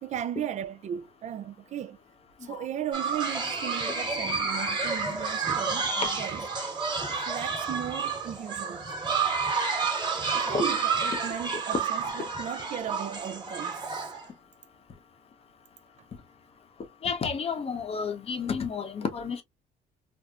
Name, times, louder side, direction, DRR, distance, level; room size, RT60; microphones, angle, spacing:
voice 1, 0.0-2.0 2.4-6.5 7.1-8.8 10.3-13.8, right 9 dB, 45° right, 0.4 m, -36 dB
sound 1, 2.9-14.2, right 5 dB, 25° right, 1.3 m, -30 dB
voice 2, 17.0-19.4, left 6 dB, 35° left, 0.8 m, -31 dB
4.3 x 2.0 x 2.3 m
cardioid pair, 110°, 17 cm